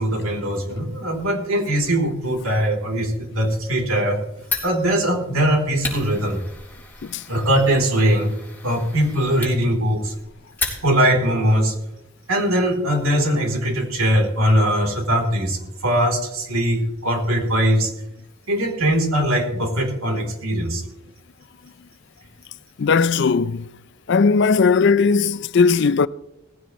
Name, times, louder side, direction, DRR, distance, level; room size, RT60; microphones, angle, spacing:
voice 1, 0.0-4.2 4.6-6.4 7.3-8.3 8.6-10.1 10.8-11.7 12.3-17.9 18.5-20.8, equal, 80° right, 3.4 m, -21 dB
Fire, 4.4-11.2, left 4 dB, 10° left, 3.6 m, -34 dB
voice 2, 22.8-23.6 24.1-26.1, left 5 dB, 55° left, 0.4 m, -17 dB
18.5 x 16.0 x 3.1 m
head